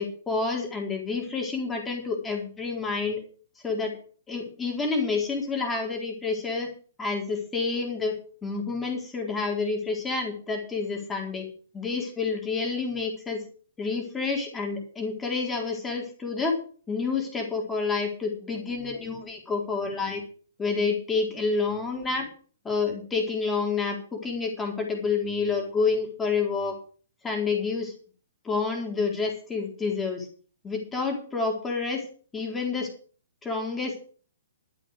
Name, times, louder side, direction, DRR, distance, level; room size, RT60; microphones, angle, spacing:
voice 1, 0.0-3.2 3.6-3.9 4.3-6.7 7.0-8.2 8.4-11.5 11.7-13.4 13.8-16.6 16.9-20.2 20.6-22.3 22.6-26.8 27.2-27.9 28.4-30.3 30.6-32.0 32.3-32.9 33.4-34.0, left 4 dB, 10° left, 1 dB, 4.1 m, -28 dB
12.5 x 9.1 x 6.5 m, 0.41 s
figure-of-eight pair, 115°, 0 cm